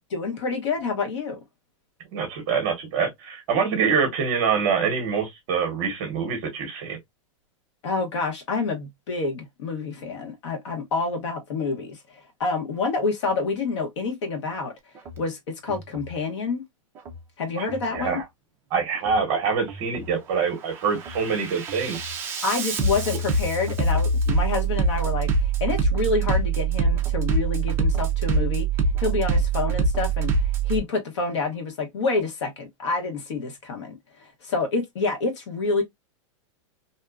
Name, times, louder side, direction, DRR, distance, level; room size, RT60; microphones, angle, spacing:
voice 1, 0.1-1.4 7.8-14.7 15.2-16.6 17.4-18.2 22.4-28.7 29.0-33.9 34.2-35.8, left 3 dB, 60° left, 1.1 m, -28 dB
voice 2, 2.1-7.0 17.6-17.7 17.9-18.2 18.7-22.0, right 6 dB, 35° right, 0.9 m, -25 dB
Bass drum, 15.0-15.2 15.7-16.2 17.0-17.2 17.7-18.2 19.0-19.2 19.7-20.2 20.6-30.8, right 4 dB, 15° right, 0.4 m, -25 dB
2.7 x 2.3 x 2.3 m
supercardioid pair, 165°, 17 cm